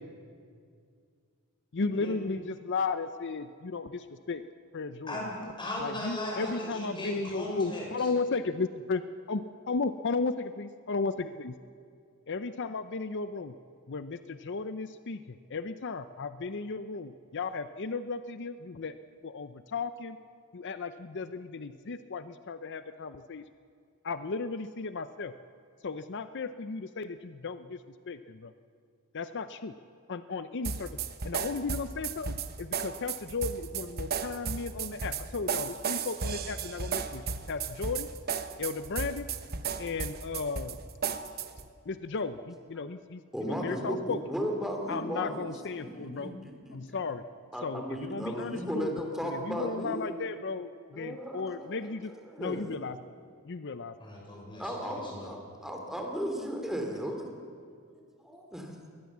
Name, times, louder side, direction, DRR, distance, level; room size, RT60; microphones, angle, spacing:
voice 1, 1.7-4.4 4.7-5.2 5.8-9.0 9.3-11.6 12.3-13.5 13.9-15.2 15.5-18.9 19.2-20.2 20.5-23.4 24.0-25.3 25.8-27.8 28.1-28.5 29.1-29.7 30.1-31.0 31.2-37.2 37.5-38.1 38.6-39.3 39.8-40.8 41.9-44.2 44.9-46.3 46.7-47.2 47.6-52.1 52.4-53.0 53.5-54.0, left 4 dB, 55° left, 11 dB, 0.6 m, -35 dB
voice 2, 5.1-8.1 54.0-55.3, left 1 dB, 20° left, -2 dB, 6.3 m, -37 dB
sound 1, 30.6-41.7, right 6 dB, 45° right, 1.0 m, -34 dB
voice 3, 43.3-45.5 45.8-47.0 47.5-50.1 50.9-52.7 54.6-57.3 57.9-58.7, equal, ahead, 2 dB, 2.9 m, -36 dB
22.0 x 19.0 x 7.3 m, 2.2 s
head